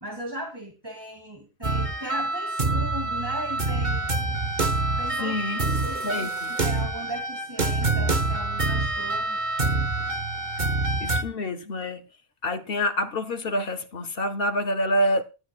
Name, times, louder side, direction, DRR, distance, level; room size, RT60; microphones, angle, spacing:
voice 1, 0.0-4.1 5.0-9.4, right 1 dB, 20° right, 2.2 m, -37 dB
sound 1, 1.6-11.2, right 2 dB, 45° right, 1.4 m, -26 dB
voice 2, 5.2-5.6 6.0-6.5 11.0-12.0 12.4-15.2, left 1 dB, 60° left, 1.0 m, -27 dB
19.0 x 13.0 x 2.3 m
omnidirectional pair, 1.1 m